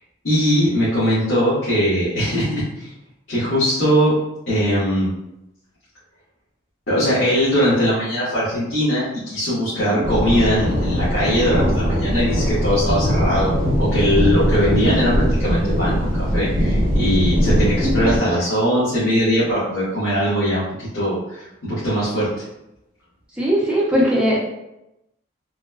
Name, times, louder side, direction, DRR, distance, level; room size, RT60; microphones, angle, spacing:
voice 1, 0.2-2.9 3.3-4.2 4.5-5.1 6.9-13.5 13.8-22.4, equal, 75° left, -13 dB, 1.1 m, -20 dB
voice 2, 9.7-10.0 17.8-18.1 23.3-24.4, equal, 5° right, -6 dB, 0.6 m, -20 dB
sound 1, 10.0-18.2, equal, 45° right, 0.8 m, -20 dB
3.1 x 2.1 x 2.3 m, 0.89 s
head